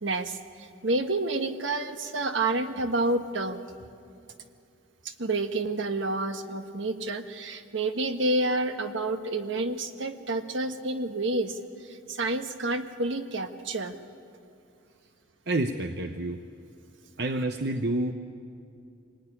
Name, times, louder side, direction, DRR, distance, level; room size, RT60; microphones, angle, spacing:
voice 1, 0.0-3.6 5.0-11.6 11.8-13.9, right 2 dB, 70° right, 7 dB, 1.4 m, -29 dB
voice 2, 15.5-16.4 17.2-18.1, right 2 dB, 55° right, 6 dB, 0.8 m, -28 dB
25.0 x 19.5 x 10.0 m, 2.5 s
head